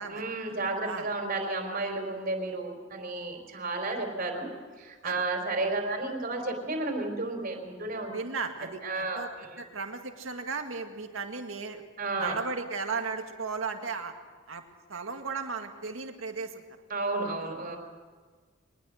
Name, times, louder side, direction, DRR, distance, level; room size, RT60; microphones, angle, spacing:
voice 1, 0.1-4.5 4.8-8.1 8.8-9.6 12.0-12.4 16.9-17.8, right 2 dB, 45° right, 3 dB, 3.9 m, -32 dB
voice 2, 8.1-9.3 9.6-11.8 12.2-14.1 14.5-14.6 14.9-16.6 17.4-17.5, right 4 dB, 80° right, 5 dB, 2.0 m, -35 dB
22.5 x 20.5 x 6.5 m, 1.5 s
head